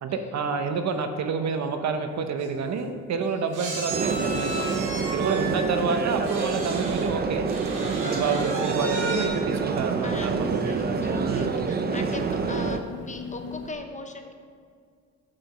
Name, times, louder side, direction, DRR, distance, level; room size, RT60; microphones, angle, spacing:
voice 1, 0.0-4.7 4.9-7.4 8.0-10.6 11.2-11.6, right 5 dB, 65° right, 7 dB, 0.9 m, -28 dB
sound 1, 2.1-2.2 2.4-2.6 3.5-7.1 7.5-9.3, right 2 dB, 85° right, 2.2 m, -35 dB
sound 2, 3.9-12.8, right 5 dB, 30° right, 0.6 m, -27 dB
sound 3, 5.4-13.7, left 4 dB, 50° left, 0.9 m, -42 dB
voice 2, 5.4-5.9 8.0-8.5 10.0-10.4 10.7-14.3, left 3 dB, 25° left, 5 dB, 1.0 m, -39 dB
8.6 x 5.1 x 6.2 m, 2.2 s
cardioid pair, 90°, 30 cm